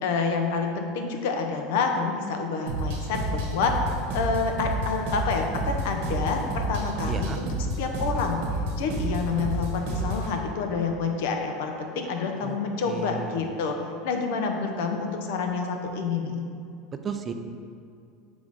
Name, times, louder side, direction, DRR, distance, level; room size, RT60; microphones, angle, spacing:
voice 1, 0.0-3.8 4.1-7.5 7.8-8.4 8.8-13.8 14.0-16.4, left 4 dB, 75° left, 4 dB, 0.7 m, -28 dB
sound 1, 2.7-10.3, right 1 dB, 75° right, 1.2 m, -30 dB
voice 2, 7.1-7.4 12.4-12.6 12.9-13.5 16.9-17.3, right 6 dB, 25° right, 7 dB, 0.4 m, -34 dB
6.2 x 3.5 x 5.0 m, 2.5 s
supercardioid pair, 140°, 0 cm